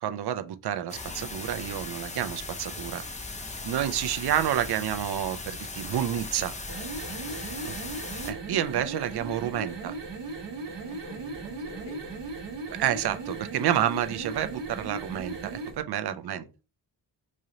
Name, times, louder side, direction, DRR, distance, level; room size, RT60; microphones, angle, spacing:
voice 1, 0.0-3.0 3.6-6.5 7.6-7.7 8.3-9.9 12.8-16.4, right 11 dB, 65° right, 0.5 m, -29 dB
sound 1, 0.9-8.3, left 3 dB, 20° left, 0.4 m, -38 dB
sound 2, 6.6-15.8, right 3 dB, 90° right, 1.0 m, -37 dB
voice 2, 7.2-7.8 10.7-12.4 16.0-16.5, left 3 dB, 75° left, 0.8 m, -49 dB
3.1 x 2.7 x 3.7 m
wide cardioid pair, 155°, 42 cm